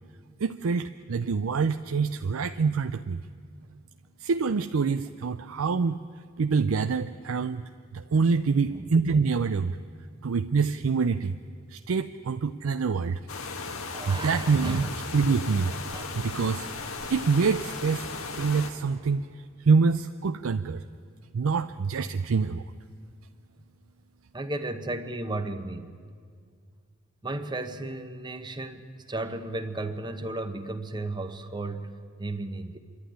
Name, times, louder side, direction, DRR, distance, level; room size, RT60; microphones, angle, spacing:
voice 1, 0.4-3.2 4.2-6.0 6.4-7.6 7.9-9.8 10.2-11.4 11.7-13.2 14.1-14.9 15.1-15.7 16.2-16.7 17.1-18.1 18.3-19.2 19.6-20.8 21.3-22.6, right 5 dB, 85° right, 9 dB, 0.5 m, -25 dB
sound 1, 13.3-18.7, left 4 dB, 85° left, 1.6 m, -36 dB
voice 2, 13.9-14.9 15.6-16.0 22.0-22.1 24.3-25.9 27.2-32.8, right 2 dB, 20° right, 9 dB, 0.9 m, -34 dB
26.5 x 11.5 x 10.0 m, 2.1 s
head